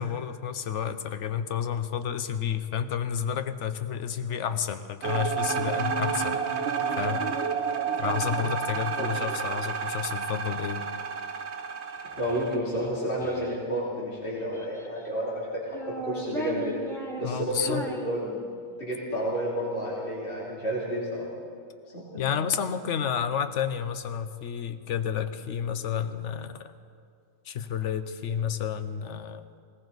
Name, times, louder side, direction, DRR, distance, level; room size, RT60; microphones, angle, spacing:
voice 1, 0.0-6.4 7.0-7.3 8.0-10.8 17.2-17.8 22.2-26.7 27.5-29.5, left 8 dB, 90° left, 11 dB, 1.1 m, -30 dB
sound 1, 5.0-12.6, right 6 dB, 70° right, 1.2 m, -30 dB
Child speech kid speaking, 11.9-13.6 14.3-15.2 15.6-18.8, right 1 dB, ahead, 1.3 m, -38 dB
voice 2, 12.2-15.8 16.0-16.8 17.2-18.2 18.8-21.2 21.9-22.4, right 1 dB, 50° left, -6 dB, 3.1 m, -31 dB
20.0 x 17.5 x 4.0 m, 2.3 s
omnidirectional pair, 1.2 m